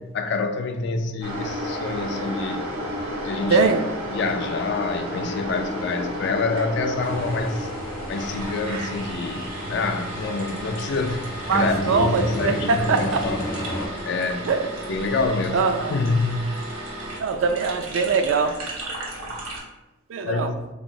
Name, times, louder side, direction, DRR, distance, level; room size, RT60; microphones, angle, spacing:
voice 1, 0.1-2.7 3.2-3.7 4.1-7.7 8.1-11.3 11.5-13.5 14.0-14.5 14.9-16.4 20.3-20.7, left 3 dB, 55° left, 0.3 m, -27 dB
sound 1, 1.2-19.6, equal, 85° right, 1.0 m, -33 dB
voice 2, 3.5-3.8 11.5-13.2 14.5-14.7 15.5-15.9 17.2-18.5 20.1-20.5, right 4 dB, 70° right, 0.4 m, -22 dB
sound 2, 7.0-13.9, equal, 80° left, 0.8 m, -32 dB
3.7 x 3.0 x 2.6 m
head